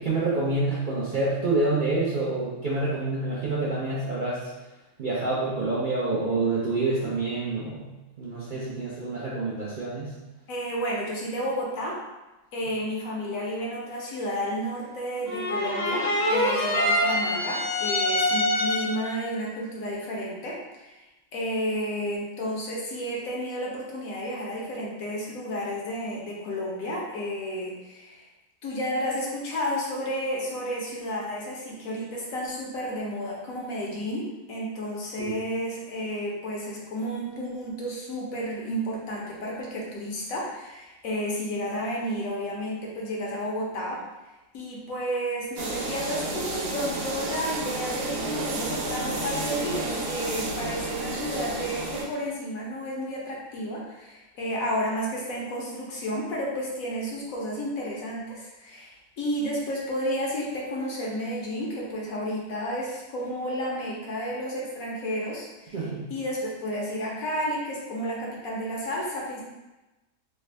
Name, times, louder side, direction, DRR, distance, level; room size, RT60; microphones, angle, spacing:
voice 1, 0.0-4.4 5.0-7.9 8.2-10.1 35.2-35.3 65.7-66.0, right 2 dB, 55° right, -8 dB, 0.5 m, -27 dB
voice 2, 10.5-12.0 12.5-21.0 21.3-28.3 28.6-44.0 44.5-69.4, equal, 70° left, -3 dB, 1.1 m, -32 dB
sound 1, 15.3-19.1, left 1 dB, 15° left, 0.5 m, -25 dB
sound 2, 45.6-52.0, right 2 dB, 85° right, 1.1 m, -31 dB
3.3 x 2.1 x 3.3 m, 1.0 s
omnidirectional pair, 1.5 m